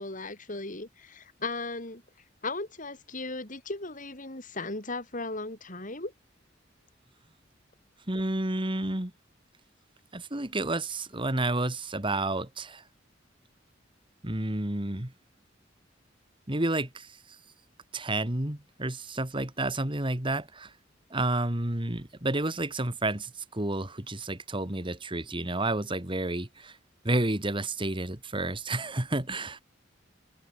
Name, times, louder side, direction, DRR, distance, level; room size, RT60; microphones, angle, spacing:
voice 1, 0.0-2.0 2.4-6.1, left 3 dB, 45° left, 5.0 m, -36 dB
voice 2, 8.1-9.1 10.1-12.8 14.2-15.1 16.5-17.1 17.9-20.7 21.1-26.8 27.0-29.6, right 2 dB, 25° right, 2.2 m, -30 dB
head